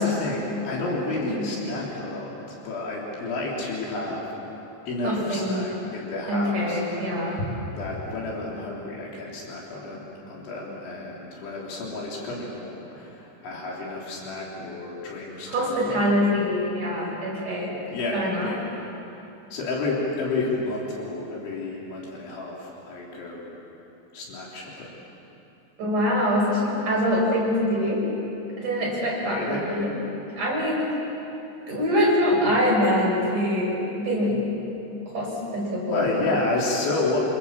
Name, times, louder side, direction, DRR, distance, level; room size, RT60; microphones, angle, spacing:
voice 1, 0.0-4.3 4.9-7.4 7.7-16.0 17.9-18.6 19.5-23.5 24.1-24.9 29.2-29.7 35.9-37.2, left 2 dB, 70° left, -4 dB, 5.9 m, -31 dB
voice 2, 1.1-1.9 5.0-5.7 6.3-7.4 15.5-17.7 18.1-18.5 25.8-28.0 28.6-29.9 30.4-30.9 31.7-34.4 35.1-36.4, equal, 40° right, -4 dB, 7.8 m, -24 dB
27.5 x 27.0 x 7.5 m, 2.9 s
omnidirectional pair, 5.6 m